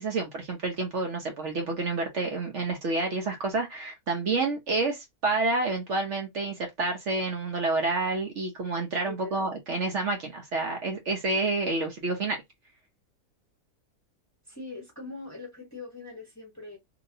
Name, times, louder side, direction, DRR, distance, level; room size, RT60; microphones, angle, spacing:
voice 1, 0.0-12.4, right 3 dB, 55° right, 1.0 m, -29 dB
voice 2, 9.1-9.5 14.5-16.8, left 3 dB, 15° left, 0.9 m, -42 dB
2.9 x 2.7 x 2.6 m
omnidirectional pair, 1.6 m